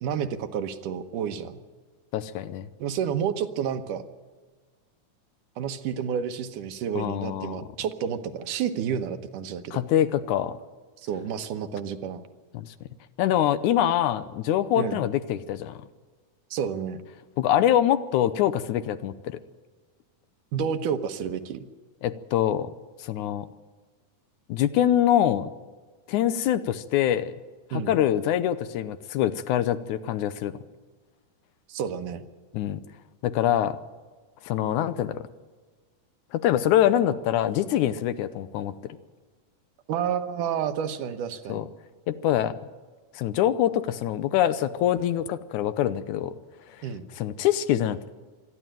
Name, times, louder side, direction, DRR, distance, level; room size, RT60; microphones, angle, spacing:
voice 1, 0.0-1.6 2.8-4.0 5.6-9.8 11.0-12.2 14.8-15.0 16.5-17.0 20.5-21.7 27.7-27.9 31.7-32.2 39.9-41.7 46.8-47.1, right 8 dB, 80° right, 8 dB, 2.6 m, -30 dB
voice 2, 2.1-2.7 7.0-7.6 9.7-10.6 12.5-12.7 13.2-15.8 17.4-19.4 22.0-22.7 23.0-23.5 24.5-25.5 26.1-27.3 27.7-30.5 32.5-32.8 33.2-33.8 34.4-35.2 36.3-38.7 41.5-41.6 42.1-42.5 43.1-46.3 47.2-48.1, left 11 dB, 75° left, 13 dB, 2.1 m, -24 dB
26.0 x 11.0 x 9.1 m, 1.4 s
omnidirectional pair, 3.6 m